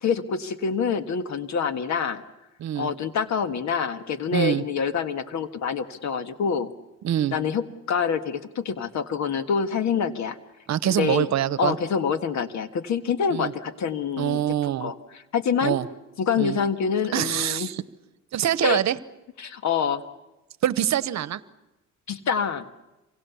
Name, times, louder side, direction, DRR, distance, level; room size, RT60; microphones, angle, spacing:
voice 1, 0.0-2.2 2.8-6.7 7.3-10.4 10.8-11.3 11.6-14.4 14.8-14.9 15.3-15.8 16.2-17.7 18.6-18.8 19.4-20.0 22.1-22.6, left 6 dB, 65° left, 10 dB, 1.6 m, -26 dB
voice 2, 2.6-2.9 4.3-4.6 7.0-7.3 10.7-11.8 13.3-13.5 14.2-14.9 15.6-15.9 16.4-16.6 17.1-17.8 18.3-19.0 20.6-21.4, right 11 dB, 65° right, 16 dB, 1.0 m, -24 dB
27.0 x 24.5 x 7.0 m, 0.99 s
cardioid pair, 90°, 30 cm